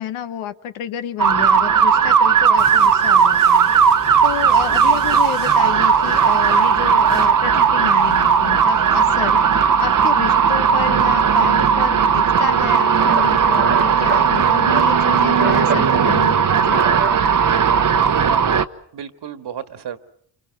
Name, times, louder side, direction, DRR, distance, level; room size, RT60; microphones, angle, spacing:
voice 1, 0.0-3.7 4.2-16.8, left 10 dB, 85° left, 10 dB, 1.2 m, -30 dB
sound 1, 1.2-18.7, right 7 dB, 40° right, 1.1 m, -16 dB
sound 2, 2.6-9.2, left 4 dB, 35° left, 1.5 m, -39 dB
voice 2, 4.7-5.0 17.9-18.4 18.9-20.0, right 7 dB, 60° right, 10 dB, 1.9 m, -34 dB
sound 3, 12.5-12.6 13.0-14.2 14.6-14.9 15.2-15.8 16.5-17.4, right 4 dB, 25° right, 1.4 m, -26 dB
28.0 x 25.0 x 6.1 m, 0.65 s
supercardioid pair, 65°, 48 cm